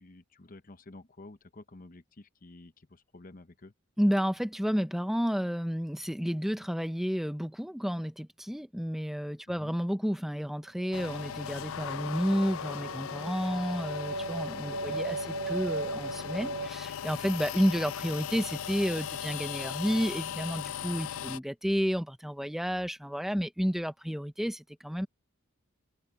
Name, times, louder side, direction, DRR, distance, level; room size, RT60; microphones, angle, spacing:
voice 1, 0.0-3.7 9.5-9.7 14.8-15.0, left 2 dB, 40° left, 0.9 m, -51 dB
voice 2, 4.0-25.1, equal, ahead, 0.7 m, -31 dB
sound 1, 10.8-16.7, right 3 dB, 70° right, 0.6 m, -38 dB
sound 2, 10.9-21.4, left 8 dB, 75° left, 0.4 m, -38 dB
head